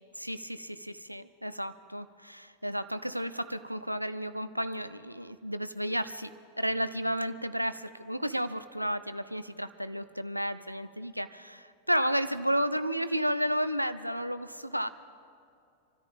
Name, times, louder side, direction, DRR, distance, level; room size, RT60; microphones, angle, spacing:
voice 1, 0.2-6.3 6.6-14.9, equal, 90° right, 13 dB, 0.5 m, -32 dB
26.0 x 13.5 x 3.6 m, 2.5 s
figure-of-eight pair, 90°, 0 cm